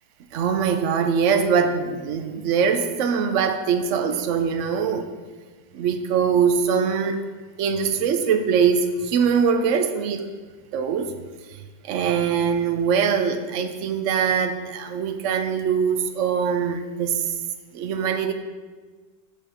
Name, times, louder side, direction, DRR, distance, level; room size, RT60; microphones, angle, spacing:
voice 1, 0.3-5.1 5.7-7.2 7.6-10.3 10.7-11.1 11.8-17.3 17.7-18.3, right 6 dB, 65° right, 7 dB, 0.7 m, -22 dB
5.4 x 5.3 x 6.6 m, 1.4 s
omnidirectional pair, 1.8 m